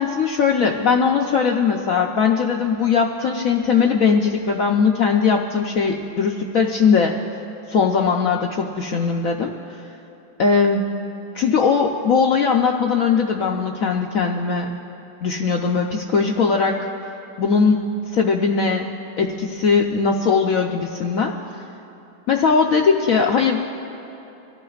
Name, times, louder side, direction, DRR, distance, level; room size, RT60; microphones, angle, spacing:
voice 1, 0.0-7.2 7.7-9.8 10.4-10.9 11.3-14.7 15.2-16.9 17.4-18.9 19.2-21.3 22.3-23.6, left 5 dB, 70° left, 1 dB, 0.8 m, -19 dB
25.0 x 14.5 x 2.4 m, 2.9 s
omnidirectional pair, 2.1 m